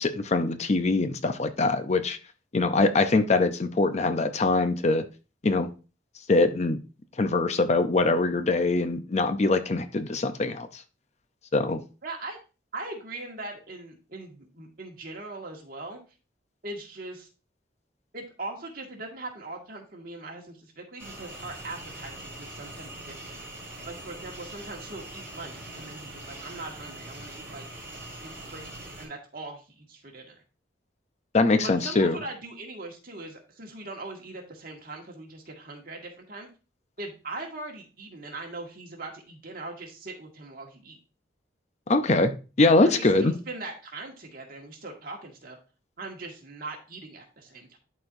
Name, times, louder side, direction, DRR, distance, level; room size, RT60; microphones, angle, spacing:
voice 1, 0.0-2.2 2.5-5.0 5.4-5.7 6.3-6.8 7.2-10.8 11.5-11.8 31.3-32.2 41.9-42.3 42.6-43.3, left 3 dB, 40° left, 9 dB, 0.6 m, -23 dB
voice 2, 12.0-12.4 12.7-16.0 16.6-17.3 18.1-23.4 23.8-27.6 28.2-28.7 29.0-30.4 31.6-36.5 37.0-41.0 42.8-45.6 46.0-47.8, right 2 dB, 55° right, 1 dB, 1.8 m, -40 dB
sound 1, 21.0-29.1, right 1 dB, 10° right, 4.0 m, -42 dB
11.5 x 4.3 x 2.6 m, 0.33 s
head